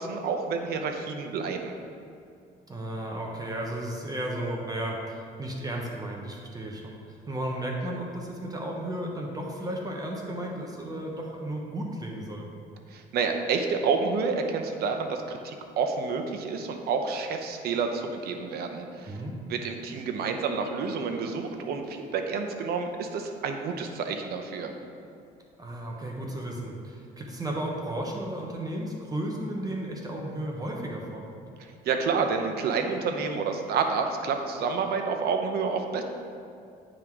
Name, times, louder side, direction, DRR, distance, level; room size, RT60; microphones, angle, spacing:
voice 1, 0.0-1.8 12.9-19.2 19.5-24.7 31.8-36.0, right 5 dB, 65° right, 5 dB, 0.8 m, -29 dB
voice 2, 2.7-12.5 19.1-19.3 25.6-31.4, right 1 dB, 20° right, -1 dB, 1.0 m, -34 dB
9.5 x 3.8 x 4.6 m, 2.5 s
cardioid pair, 110°, 17 cm